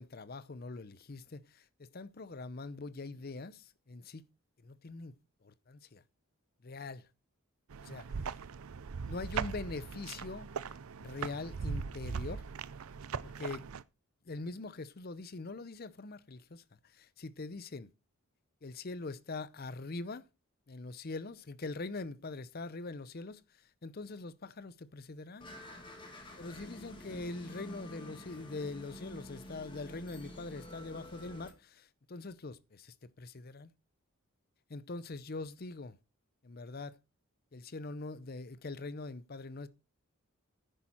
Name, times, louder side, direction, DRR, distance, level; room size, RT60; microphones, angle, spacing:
voice 1, 0.0-4.3 4.6-5.2 5.4-6.0 6.6-7.1 7.8-8.1 9.0-10.5 11.0-12.4 13.2-13.6 14.2-17.9 18.6-20.2 20.7-25.5 26.4-33.7 34.7-36.0 36.4-37.0 37.5-39.7, left 3 dB, 45° left, 0.6 m, -43 dB
sound 1, 7.7-13.8, right 6 dB, 80° right, 0.5 m, -40 dB
sound 2, 25.4-31.5, equal, 20° left, 2.0 m, -49 dB
10.0 x 8.5 x 4.3 m
head